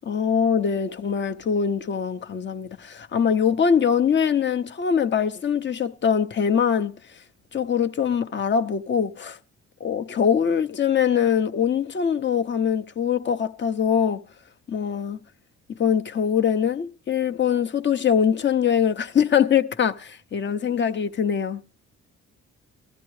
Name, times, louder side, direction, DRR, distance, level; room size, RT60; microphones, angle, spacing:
voice 1, 0.0-7.2 7.5-9.4 9.8-14.2 14.7-15.2 15.7-21.6, left 7 dB, 40° left, 0.7 m, -23 dB
19.5 x 13.5 x 3.2 m
cardioid pair, 90°, 30 cm